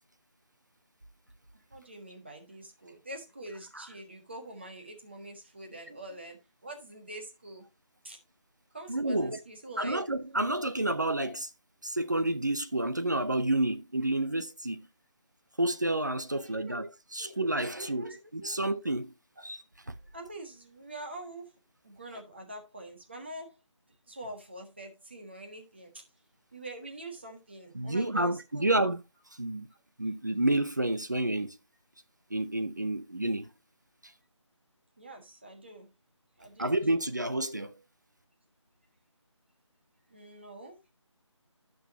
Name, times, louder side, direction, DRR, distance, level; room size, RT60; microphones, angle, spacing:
voice 1, 1.5-7.7 8.0-8.2 8.7-10.0 16.3-16.8 17.2-18.6 19.4-19.5 20.1-21.5 21.8-23.6 24.1-26.0 26.5-28.8 35.0-35.9 36.4-36.7 40.1-40.8, right 1 dB, 20° right, 1.5 m, -45 dB
voice 2, 8.9-9.4 9.8-11.5 11.8-14.8 15.6-19.1 19.4-19.6 27.7-29.0 29.4-29.7 30.0-31.6 32.3-33.5 36.6-37.7, right 1 dB, 35° right, 0.7 m, -29 dB
14.0 x 6.2 x 2.7 m
figure-of-eight pair, 180°, 16 cm